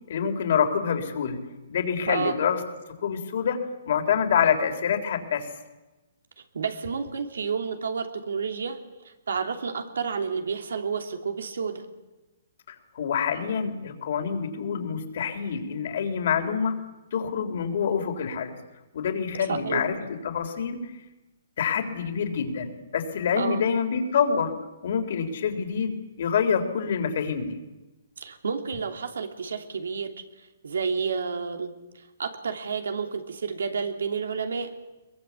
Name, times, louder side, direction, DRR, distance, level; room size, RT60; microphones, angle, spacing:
voice 1, 0.1-1.4 1.7-2.6 3.0-3.6 3.9-5.5 12.7-16.8 17.1-18.5 18.9-20.8 21.6-24.5 24.8-27.6, left 7 dB, 60° left, 6 dB, 3.7 m, -26 dB
voice 2, 2.1-2.4 6.5-8.8 9.0-11.9 19.4-19.8 23.4-23.7 28.2-30.1 30.6-34.7, right 5 dB, 90° right, 5 dB, 2.9 m, -30 dB
22.5 x 21.0 x 8.3 m, 1.1 s
hypercardioid pair, 155°, 0 cm